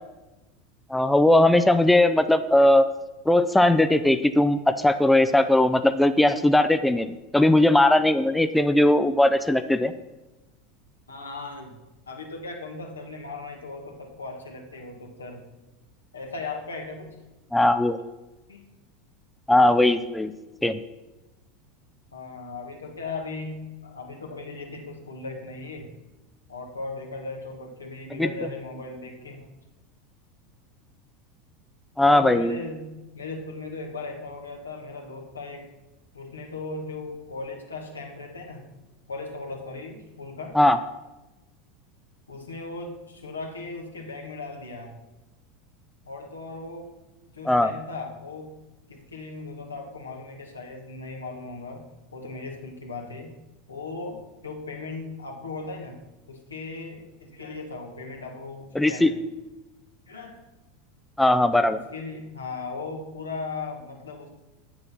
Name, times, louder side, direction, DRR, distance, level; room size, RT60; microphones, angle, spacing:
voice 1, 0.9-2.9 3.3-7.1 7.3-9.9 17.5-18.0 19.5-20.3 20.6-20.8 28.2-28.3 32.0-32.6 40.5-40.8 47.5-47.7 58.8-59.1 61.2-61.8, left 1 dB, 5° left, 10 dB, 0.5 m, -19 dB
voice 2, 11.1-11.8 12.1-15.4 16.1-17.1 18.5-18.7 22.1-25.9 26.5-29.5 32.1-35.7 36.1-38.7 39.1-40.6 42.3-45.0 46.1-46.9 47.3-48.6 48.9-51.8 52.1-53.3 53.7-56.0 56.3-59.1 60.1-60.4 61.7-64.3, left 3 dB, 85° left, 2 dB, 1.5 m, -37 dB
8.3 x 6.8 x 5.6 m, 1.0 s
figure-of-eight pair, 80°, 0 cm